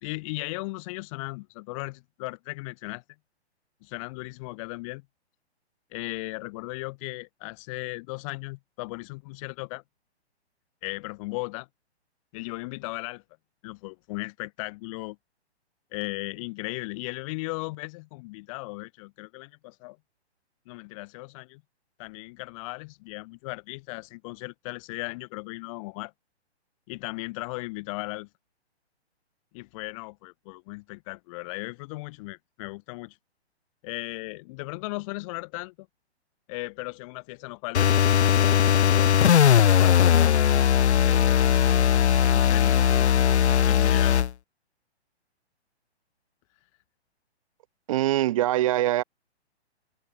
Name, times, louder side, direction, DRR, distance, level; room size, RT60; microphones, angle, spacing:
voice 1, 0.0-3.0 3.8-5.1 5.9-9.8 10.8-11.7 12.3-13.2 13.6-15.2 15.9-20.0 20.7-21.6 22.0-26.1 26.9-28.3 29.5-33.2 33.8-35.9 36.5-39.4 39.8-40.5 41.0-42.0 42.3-43.1 43.6-44.2, left 25 dB, 30° left, 2.0 m, -37 dB
sound 1, 37.7-44.3, left 9 dB, 80° left, 0.7 m, -19 dB
voice 2, 47.9-49.0, right 14 dB, 30° right, 0.6 m, -23 dB
hypercardioid pair, 145°, 33 cm